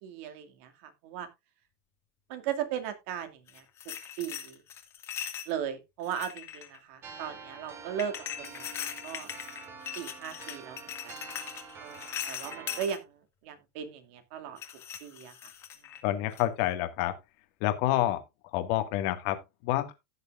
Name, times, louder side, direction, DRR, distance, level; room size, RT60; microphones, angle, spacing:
voice 1, 0.0-1.3 2.3-3.6 4.2-4.6 5.5-9.3 10.0-11.3 11.8-14.6 15.0-15.4, right 9 dB, 60° right, 2.3 m, -37 dB
sound 1, 3.5-5.5 6.0-6.8 8.0-13.0 14.6-16.0 16.4-16.6, left 9 dB, 35° left, 1.9 m, -40 dB
sound 2, 7.0-12.9, right 5 dB, 30° right, 2.5 m, -47 dB
voice 2, 16.0-17.2 17.6-18.2 18.5-19.9, left 14 dB, 55° left, 1.8 m, -28 dB
16.0 x 6.7 x 2.5 m
supercardioid pair, 125°, 8 cm